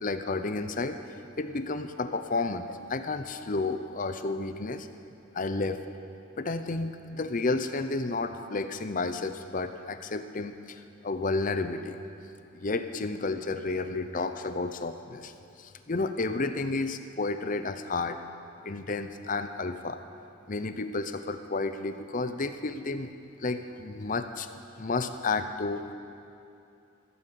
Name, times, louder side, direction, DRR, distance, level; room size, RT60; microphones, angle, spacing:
voice 1, 0.0-1.0 1.4-4.9 5.3-5.8 6.4-12.0 12.6-15.3 15.6-18.2 18.6-20.0 20.5-23.1 23.4-24.5 24.8-25.9, left 3 dB, 40° left, 9 dB, 0.6 m, -31 dB
15.0 x 9.8 x 6.9 m, 2.7 s
head